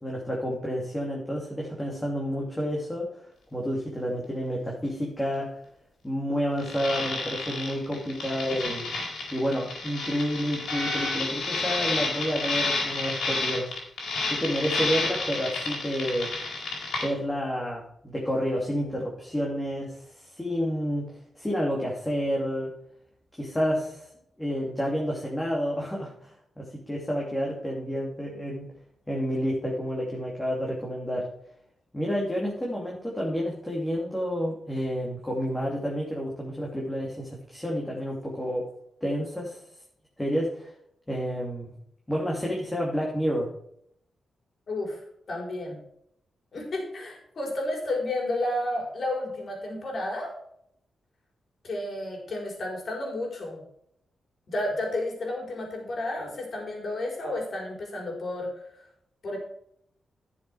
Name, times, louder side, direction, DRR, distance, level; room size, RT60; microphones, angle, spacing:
voice 1, 0.0-3.1 3.5-5.5 6.0-8.9 9.3-13.7 14.3-16.3 17.0-21.0 21.4-22.7 23.4-24.1 24.4-26.3 26.6-28.7 29.1-31.3 31.9-38.6 39.0-39.6 40.2-40.7 41.1-41.7 42.1-43.5, equal, 10° left, -3 dB, 2.7 m, -29 dB
sound 1, 6.6-17.1, left 3 dB, 85° left, 4.4 m, -30 dB
voice 2, 44.7-45.0 45.3-45.8 46.5-50.3 51.6-53.6 54.5-58.8 59.2-59.4, left 1 dB, 55° left, 0 dB, 4.6 m, -31 dB
11.5 x 7.1 x 4.8 m, 0.70 s
cardioid pair, 85°, 0 cm